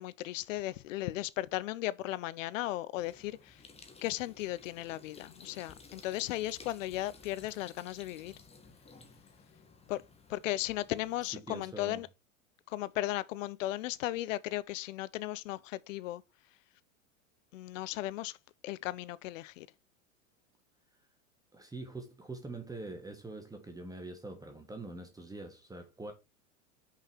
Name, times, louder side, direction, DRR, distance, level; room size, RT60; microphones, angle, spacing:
voice 1, 0.0-3.6 4.0-8.3 9.9-10.0 10.3-12.1 12.7-16.2 17.5-18.4 18.6-19.7, left 16 dB, 70° left, 0.7 m, -36 dB
sound 1, 3.0-11.4, left 4 dB, 15° left, 1.4 m, -56 dB
voice 2, 11.2-12.1 21.5-26.1, right 2 dB, 10° right, 1.2 m, -44 dB
5.7 x 5.3 x 4.4 m
hypercardioid pair, 105°, 40 cm